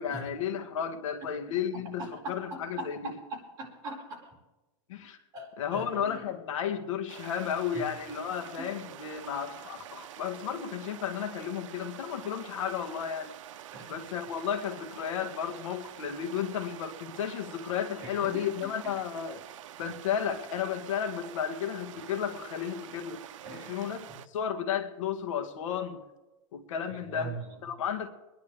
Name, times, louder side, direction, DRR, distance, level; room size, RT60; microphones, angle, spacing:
voice 1, 0.0-3.1 4.9-5.2 5.6-13.3 13.9-19.4 19.8-23.2 23.5-24.1 24.3-26.0 26.5-27.3 27.6-28.1, left 8 dB, 80° left, 6 dB, 1.7 m, -33 dB
voice 2, 1.7-4.3 5.3-6.2 7.7-7.9 8.6-8.7 13.7-14.0 18.0-18.9 23.4-24.2 26.9-27.5, right 2 dB, 25° right, -4 dB, 4.6 m, -42 dB
sound 1, 7.1-24.3, right 11 dB, 80° right, 0.8 m, -47 dB
25.0 x 10.5 x 3.4 m, 1.1 s
supercardioid pair, 170°, 16 cm